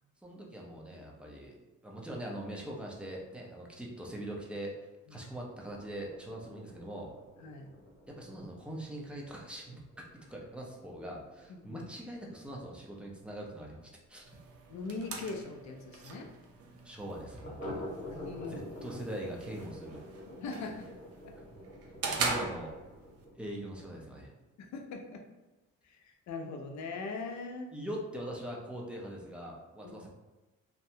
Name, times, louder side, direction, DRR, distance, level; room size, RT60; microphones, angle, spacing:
voice 1, 0.2-1.6 1.8-4.7 5.1-7.1 8.1-9.8 10.3-13.8 14.1-14.3 16.8-17.8 18.5-20.0 22.1-22.7 23.3-24.3 27.7-30.1, right 1 dB, 5° right, -2 dB, 0.6 m, -42 dB
sound 1, 5.7-14.9 15.2-15.3 15.6-15.7 16.1-16.2 17.4-24.1, left 1 dB, 25° left, 1.1 m, -48 dB
voice 2, 11.5-11.8 14.7-16.3 18.1-19.0 20.4-20.9 24.6-25.2 25.8-27.7 29.8-29.9, left 3 dB, 65° left, 3 dB, 0.5 m, -41 dB
sound 2, 14.2-23.2, right 4 dB, 50° right, 0.5 m, -41 dB
2.7 x 2.2 x 2.7 m, 1.1 s
cardioid pair, 90°, 30 cm